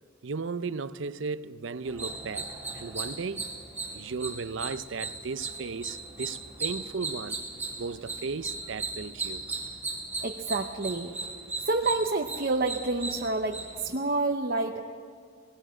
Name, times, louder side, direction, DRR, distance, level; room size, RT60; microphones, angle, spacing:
voice 1, 0.2-3.6 3.9-7.4 7.8-9.4, right 4 dB, 70° right, 0.6 m, -35 dB
sound 1, 1.8-13.9, right 3 dB, 10° right, 3.7 m, -37 dB
voice 2, 10.2-11.1 11.6-14.8, right 3 dB, 50° right, 0.9 m, -28 dB
19.0 x 18.5 x 7.6 m
head